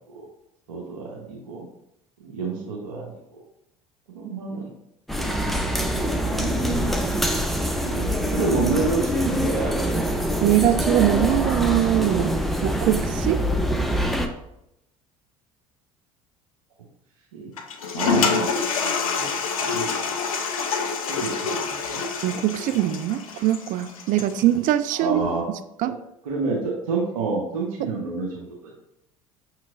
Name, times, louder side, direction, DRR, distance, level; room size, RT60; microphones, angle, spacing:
voice 1, 0.7-1.6 2.2-3.4 4.1-4.7 5.2-5.3 5.6-7.1 7.8-9.8 17.3-17.5 17.9-18.5 19.2-19.3 19.6-19.9 21.1-22.0 24.9-25.4 25.8-25.9 26.3-28.8, right 4 dB, 85° right, 0.8 m, -29 dB
sound 1, 5.1-14.3, equal, ahead, 0.5 m, -24 dB
voice 2, 10.4-12.4 12.6-13.5 22.2-25.2 25.8-26.0, right 13 dB, 50° right, 0.4 m, -22 dB
Toilet flush, 17.6-24.5, left 5 dB, 85° left, 0.5 m, -27 dB
6.4 x 3.0 x 2.5 m
hypercardioid pair, 65°, 17 cm